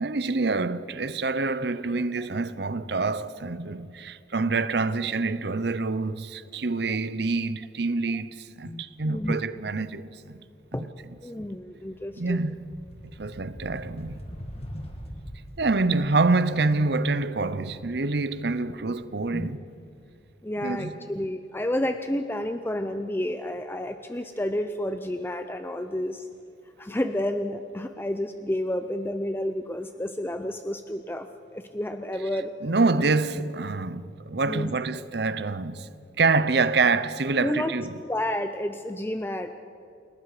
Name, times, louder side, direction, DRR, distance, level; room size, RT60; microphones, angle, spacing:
voice 1, 0.0-10.4 10.7-10.9 12.2-12.5 13.0-14.2 15.6-19.6 20.6-20.9 32.6-35.9 36.2-38.0, right 3 dB, 60° right, 0.8 m, -26 dB
voice 2, 8.6-9.4 10.7-10.9 11.2-12.4 19.3-19.5 20.4-26.3 26.8-32.5 34.4-34.7 37.4-37.7 38.1-39.5, left 1 dB, 10° left, 0.6 m, -30 dB
sound 1, 10.1-10.4 10.7-19.6, equal, 35° left, 2.2 m, -43 dB
29.0 x 18.5 x 4.9 m
head